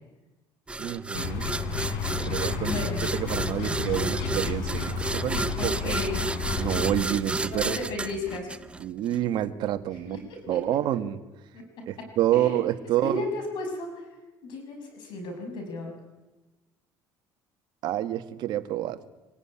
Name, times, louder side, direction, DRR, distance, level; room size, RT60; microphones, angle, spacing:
sound 1, 0.7-9.2, right 3 dB, 15° right, 0.7 m, -32 dB
voice 1, 0.8-1.5 2.2-2.9 3.1-5.9 6.6-7.8 8.8-10.2 10.5-11.2 11.9-13.2 17.8-19.0, right 12 dB, 70° right, 9 dB, 1.6 m, -28 dB
sound 2, 1.1-7.0, left 5 dB, 85° left, 3.9 m, -31 dB
voice 2, 2.3-3.0 5.6-6.2 7.5-8.5 10.0-10.6 11.5-11.6 12.0-12.1 12.3-12.6 13.0-14.1 14.4-16.0, left 2 dB, 70° left, 4 dB, 6.1 m, -34 dB
sound 3, 2.8-8.9, right 6 dB, 45° right, 5.8 m, -48 dB
24.5 x 16.0 x 10.0 m, 1.1 s
cardioid pair, 100°, 8 cm